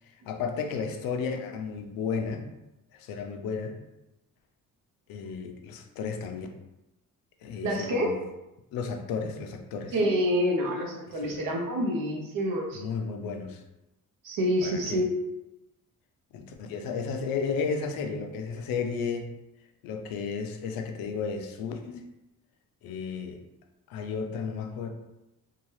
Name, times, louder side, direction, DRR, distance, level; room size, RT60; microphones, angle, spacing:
voice 1, 0.3-2.5 2.9-3.8 5.1-6.5 7.4-8.2 8.7-10.0 11.1-11.5 12.7-13.6 14.6-15.0 16.3-19.3 19.8-22.0 22.8-23.4 23.9-24.9, left 5 dB, 85° left, 4 dB, 0.5 m, -33 dB
voice 2, 7.6-8.2 9.9-12.8 14.2-15.1, equal, 75° right, 0 dB, 0.8 m, -27 dB
2.8 x 2.3 x 3.1 m, 0.94 s
cardioid pair, 140°, 34 cm